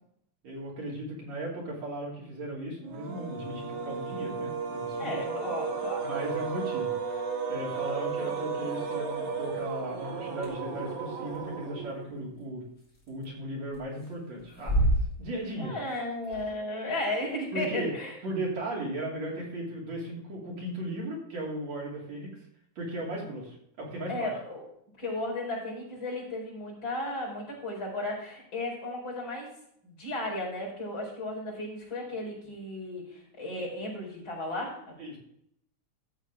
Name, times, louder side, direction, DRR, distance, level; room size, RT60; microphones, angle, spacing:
voice 1, 0.4-5.2 6.0-7.2 7.5-12.7 13.1-14.9 15.2-15.8 17.5-17.9 18.2-22.4 22.8-24.3 35.0-35.2, right 1 dB, 65° right, -3 dB, 4.1 m, -36 dB
sound 1, 2.9-12.2, right 5 dB, 85° right, 2.8 m, -34 dB
voice 2, 5.0-6.1 15.6-18.1 24.1-24.6 25.0-29.5 29.8-34.9, left 1 dB, 40° left, -5 dB, 5.4 m, -34 dB
sound 2, 9.5-9.6 10.4-10.5 11.3-11.4 12.9-13.3 13.6-14.1 14.4-15.7 16.0-16.1 16.2-16.5, right 1 dB, 20° left, 3.6 m, -28 dB
12.5 x 8.2 x 3.7 m, 0.72 s
omnidirectional pair, 3.4 m